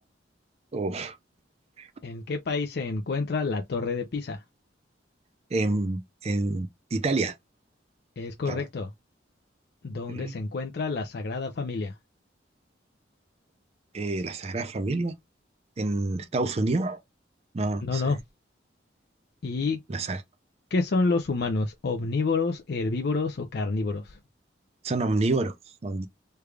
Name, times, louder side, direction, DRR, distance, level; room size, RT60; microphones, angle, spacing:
voice 1, 0.7-1.2 1.8-1.9 5.5-7.3 8.5-8.6 10.1-10.4 13.9-15.2 15.8-17.0 17.5-18.0 19.9-20.2 24.8-25.5 25.8-26.1, right 2 dB, 35° right, 0.4 m, -28 dB
voice 2, 2.0-4.4 8.2-8.9 9.8-11.9 17.8-18.2 19.4-19.8 20.7-24.2, left 3 dB, 60° left, 0.5 m, -28 dB
3.3 x 2.3 x 3.2 m
head